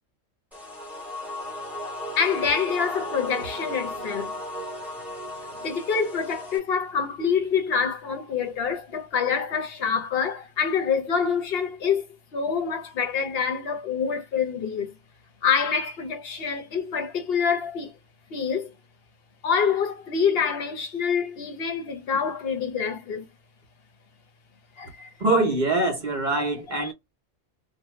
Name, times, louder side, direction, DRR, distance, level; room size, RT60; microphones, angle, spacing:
sound 1, 0.5-6.6, left 1 dB, ahead, 0.8 m, -35 dB
voice 1, 2.2-4.3 5.6-12.0 12.3-14.9 15.4-17.9 18.3-18.7 19.4-23.2 24.8-25.1 26.8-26.9, left 6 dB, 55° left, 0.8 m, -26 dB
voice 2, 25.2-26.9, right 2 dB, 45° right, 0.8 m, -23 dB
2.6 x 2.1 x 3.1 m
omnidirectional pair, 1.3 m